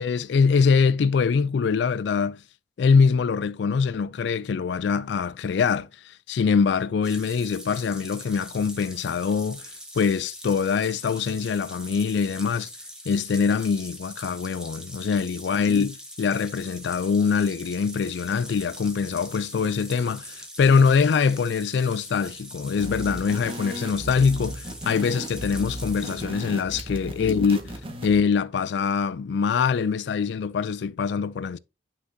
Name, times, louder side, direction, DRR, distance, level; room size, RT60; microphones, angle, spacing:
voice 1, 0.0-2.4 2.8-12.7 13.1-31.6, left 5 dB, 65° left, 0.3 m, -23 dB
sound 1, 7.0-26.2, equal, 5° right, 1.8 m, -42 dB
sound 2, 22.8-28.2, right 1 dB, 30° right, 1.6 m, -36 dB
9.9 x 5.8 x 2.8 m
head